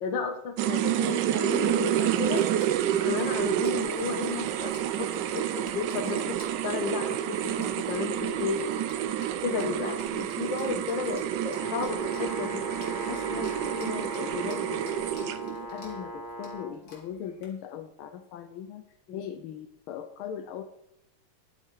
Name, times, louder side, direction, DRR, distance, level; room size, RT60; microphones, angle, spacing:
voice 1, 0.0-2.5 2.9-8.6 9.4-12.7 19.1-19.3, left 5 dB, 65° left, 8 dB, 1.8 m, -33 dB
sound 1, 0.6-15.7, right 11 dB, 70° right, 1.1 m, -29 dB
sound 2, 1.4-17.5, left 3 dB, 45° left, 2.7 m, -53 dB
Brass instrument, 11.5-16.8, equal, 15° left, 0.9 m, -39 dB
voice 2, 13.1-15.3 15.7-18.8 19.1-20.6, left 8 dB, 85° left, 8 dB, 1.5 m, -39 dB
10.5 x 8.6 x 4.6 m, 0.79 s
omnidirectional pair, 2.3 m